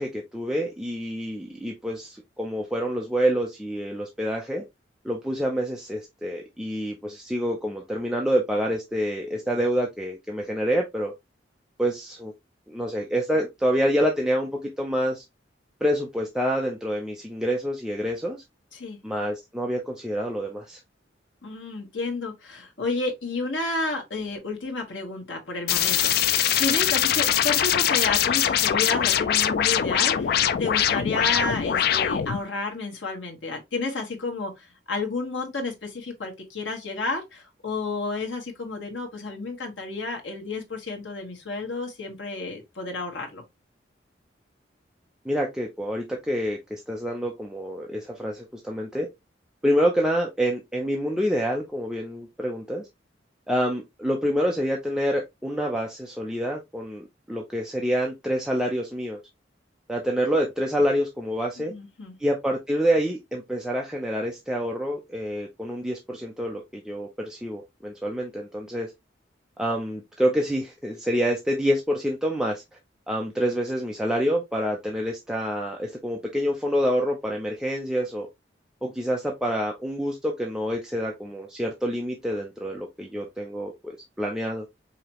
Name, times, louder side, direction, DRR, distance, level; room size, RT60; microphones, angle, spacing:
voice 1, 0.0-4.6 5.0-11.1 11.8-12.3 12.7-15.2 15.8-18.4 19.0-20.8 45.2-49.1 49.6-52.8 53.5-59.2 59.9-61.7 62.2-68.9 69.6-72.6 73.1-78.3 78.8-84.7, equal, 5° right, 0.5 m, -27 dB
voice 2, 21.4-43.4 61.6-62.1, left 3 dB, 85° left, 1.4 m, -31 dB
sound 1, 25.7-32.4, left 9 dB, 55° left, 0.3 m, -22 dB
5.0 x 2.9 x 2.9 m
head